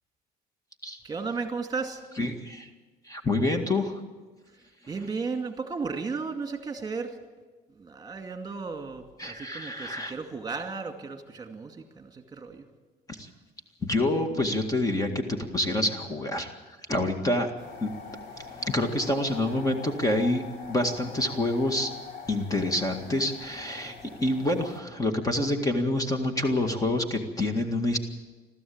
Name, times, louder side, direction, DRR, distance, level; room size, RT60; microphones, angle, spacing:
voice 1, 1.0-2.0 4.9-7.2 7.8-12.7, right 4 dB, 25° right, 5 dB, 2.3 m, -34 dB
voice 2, 2.2-2.7 3.1-4.0 9.2-10.1 13.1-13.3 13.8-16.5 16.9-17.5 17.8-17.9 18.4-20.4 20.7-21.9 22.3-23.9 24.2-28.0, left 1 dB, 20° left, 5 dB, 2.0 m, -27 dB
sound 1, 17.6-24.8, left 5 dB, 85° left, 3.7 m, -44 dB
21.5 x 14.5 x 8.7 m, 1.3 s
cardioid pair, 110°, 17 cm